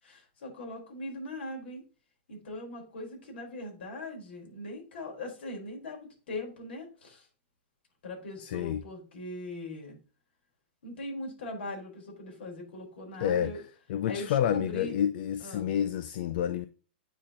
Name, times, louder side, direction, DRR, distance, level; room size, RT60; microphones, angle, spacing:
voice 1, 0.0-1.8 2.3-7.3 8.0-10.0 10.8-13.6 14.1-14.9 15.4-15.7, left 2 dB, 80° left, 4.1 m, -40 dB
voice 2, 8.4-8.8 13.2-13.5 13.9-16.7, left 9 dB, 60° left, 0.5 m, -29 dB
9.2 x 4.2 x 3.7 m
hypercardioid pair, 150°, 6 cm